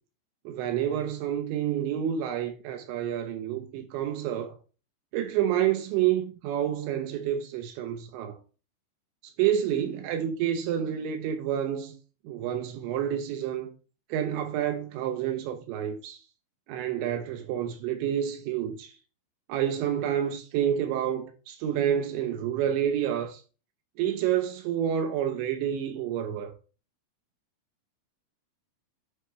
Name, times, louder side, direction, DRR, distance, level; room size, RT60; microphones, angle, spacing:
voice 1, 0.5-4.6 5.1-8.4 9.4-11.9 12.2-13.7 14.1-16.2 16.7-19.0 19.5-23.4 24.0-26.5, right 10 dB, 80° right, 2.9 m, -29 dB
10.0 x 4.9 x 3.2 m
omnidirectional pair, 5.6 m